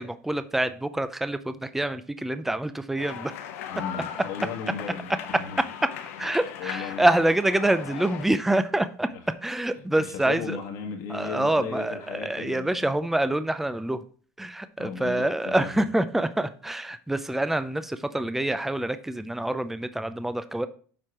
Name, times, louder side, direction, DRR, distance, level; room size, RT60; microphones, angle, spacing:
voice 1, 0.0-3.3 3.9-4.0 6.2-9.1 9.4-10.6 11.1-14.0 14.4-20.7, right 1 dB, 5° right, 11 dB, 0.5 m, -26 dB
sound 1, 3.0-8.3, left 9 dB, 85° left, 1.0 m, -38 dB
voice 2, 3.7-5.6 6.6-7.2 9.1-9.2 9.7-12.9 14.8-15.8, left 6 dB, 70° left, 2 dB, 1.8 m, -36 dB
7.6 x 4.5 x 4.8 m, 0.43 s
supercardioid pair, 110°, 7 cm